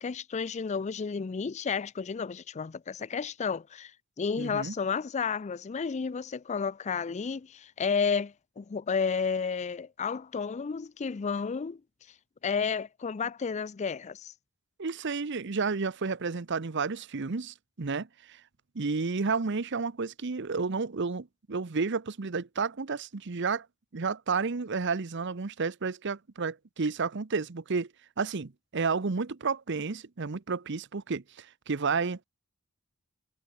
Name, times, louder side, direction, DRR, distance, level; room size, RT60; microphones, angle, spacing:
voice 1, 0.0-11.8 12.4-14.3, left 5 dB, 35° left, 0.4 m, -32 dB
voice 2, 4.4-4.7 14.8-18.4 18.7-23.7 23.9-27.9 28.2-32.2, right 4 dB, 60° right, 0.8 m, -31 dB
head